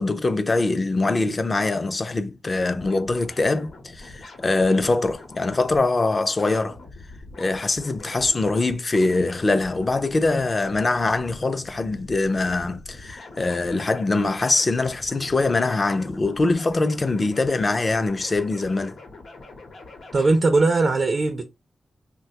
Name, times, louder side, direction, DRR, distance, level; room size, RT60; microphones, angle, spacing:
voice 1, 0.0-6.8 7.4-18.9, left 3 dB, 35° left, 0.4 m, -23 dB
sound 1, 2.6-5.8 6.4-20.4, left 2 dB, 80° left, 0.8 m, -44 dB
voice 2, 20.1-21.6, right 3 dB, 50° right, 0.4 m, -20 dB
3.2 x 2.2 x 2.8 m
wide cardioid pair, 115°, 0 cm